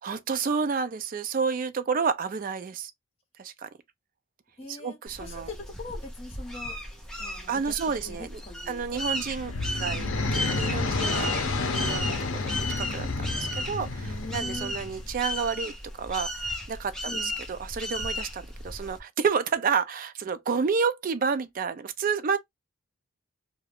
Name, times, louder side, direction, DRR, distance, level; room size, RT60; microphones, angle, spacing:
voice 1, 0.0-2.9 3.4-3.7 4.7-5.5 7.5-8.4 8.7-11.3 11.6-22.4, right 5 dB, 40° right, 0.4 m, -30 dB
voice 2, 4.6-6.8 7.2-8.9 10.8-11.7 14.0-14.7 17.1-17.3, left 3 dB, 30° left, 1.0 m, -42 dB
sound 1, 5.1-19.0, equal, 5° left, 0.7 m, -35 dB
sound 2, 9.0-15.1, left 3 dB, 70° left, 0.6 m, -30 dB
2.3 x 2.2 x 3.3 m
head